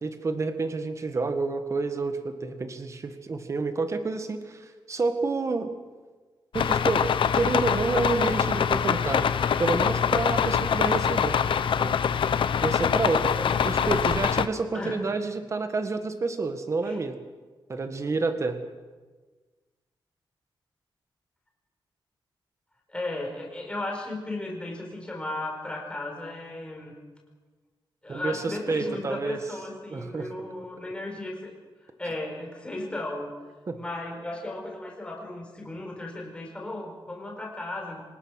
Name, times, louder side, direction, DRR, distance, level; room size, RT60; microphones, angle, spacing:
voice 1, 0.0-5.7 6.5-9.3 9.6-11.4 11.8-11.9 12.6-13.3 13.6-17.2 17.7-18.6 28.1-29.4 29.9-30.3 33.7-33.8, right 3 dB, 35° right, 8 dB, 1.8 m, -29 dB
sound 1, 6.5-14.5, left 7 dB, 75° left, 0.9 m, -24 dB
voice 2, 13.3-14.0 14.7-15.0 16.8-17.0 22.9-26.9 28.0-31.5 32.0-33.3 33.7-38.0, left 2 dB, 10° left, 0 dB, 4.8 m, -35 dB
25.0 x 19.5 x 6.6 m, 1.3 s
wide cardioid pair, 170°, 9 cm